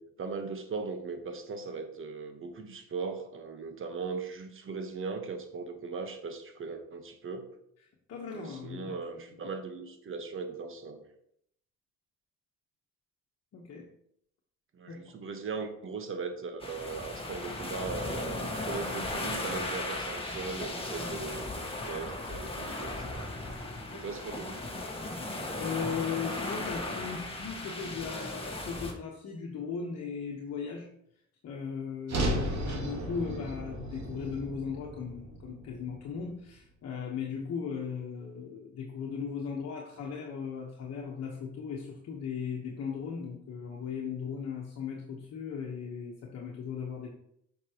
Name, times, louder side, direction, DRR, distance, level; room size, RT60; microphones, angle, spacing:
voice 1, 0.0-7.5 8.3-11.0 14.7-23.3 23.9-24.6, right 4 dB, 45° right, 7 dB, 1.3 m, -39 dB
voice 2, 8.1-8.9 13.5-13.9 14.9-15.0 23.9-24.2 25.1-30.9 31.4-47.1, left 6 dB, 55° left, -1 dB, 1.3 m, -37 dB
sound 1, 16.6-28.9, left 2 dB, 20° left, 1.6 m, -36 dB
sound 2, 32.1-36.4, right 1 dB, 65° right, 2.6 m, -34 dB
8.4 x 6.0 x 3.0 m, 0.72 s
cardioid pair, 95°, 30 cm